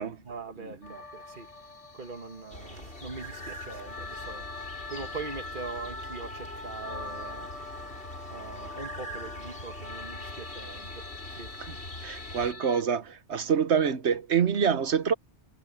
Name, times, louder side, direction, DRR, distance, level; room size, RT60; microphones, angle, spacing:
voice 1, 0.0-1.5 1.9-7.5 8.3-11.5, right 4 dB, 45° right, 1.9 m, -42 dB
sound 1, 0.8-12.8, left 3 dB, 30° left, 1.0 m, -43 dB
sound 2, 2.5-12.5, left 1 dB, 65° left, 6.7 m, -43 dB
voice 2, 12.0-15.1, right 7 dB, 75° right, 1.3 m, -26 dB
omnidirectional pair, 1.2 m